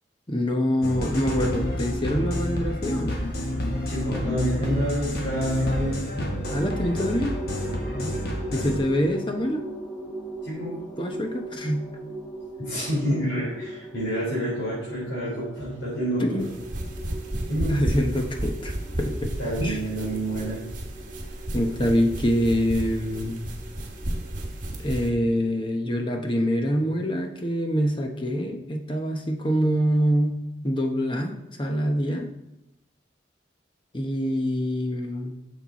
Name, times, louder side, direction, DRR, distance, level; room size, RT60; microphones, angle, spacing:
voice 1, 0.3-3.2 6.5-7.4 8.5-9.7 11.0-11.9 16.2-16.5 17.7-19.8 21.5-23.4 24.8-32.3 33.9-35.4, equal, 25° left, 4 dB, 0.9 m, -25 dB
sound 1, 0.8-8.8, equal, 55° left, 1.6 m, -29 dB
voice 2, 3.9-6.4 7.9-8.2 10.4-10.8 12.6-16.5 17.5-17.8 19.4-20.6 21.2-21.4, equal, 90° left, -8 dB, 3.8 m, -28 dB
sound 2, 6.4-26.2, right 1 dB, 5° left, 1.2 m, -39 dB
sound 3, 16.4-25.1, right 1 dB, 45° right, 1.3 m, -33 dB
8.9 x 7.4 x 4.1 m, 0.90 s
head